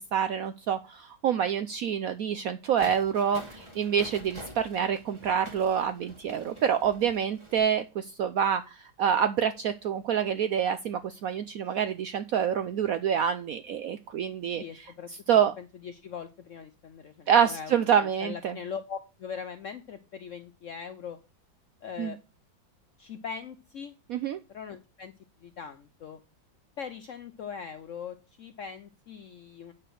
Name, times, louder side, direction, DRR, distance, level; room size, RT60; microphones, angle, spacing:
voice 1, 0.1-14.9 15.3-15.5 17.3-18.6 22.0-22.1 24.1-24.4, right 8 dB, 75° right, 11 dB, 0.8 m, -27 dB
sound 1, 2.8-7.6, equal, 15° right, 1.3 m, -47 dB
voice 2, 14.5-15.1 15.6-21.2 21.8-22.2 23.0-23.9 24.5-25.1 25.4-26.2 26.8-29.7, left 6 dB, 70° left, 9 dB, 0.7 m, -41 dB
8.6 x 4.9 x 6.2 m, 0.29 s
omnidirectional pair, 2.0 m